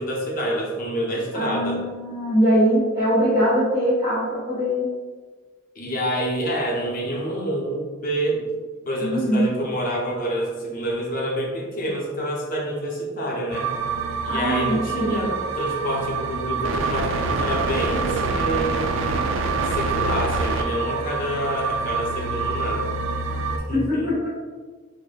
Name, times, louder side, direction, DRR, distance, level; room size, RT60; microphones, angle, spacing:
voice 1, 0.0-1.8 5.7-8.4 8.9-13.7 14.2-18.9 19.6-22.9 23.7-24.3, equal, 50° left, -3 dB, 0.7 m, -27 dB
voice 2, 1.3-4.9 9.0-9.5 14.3-15.2 23.7-24.3, equal, 20° right, -11 dB, 1.0 m, -22 dB
sound 1, 13.5-23.6, right 4 dB, 85° right, 0.3 m, -26 dB
4.9 x 2.1 x 2.2 m, 1.4 s
head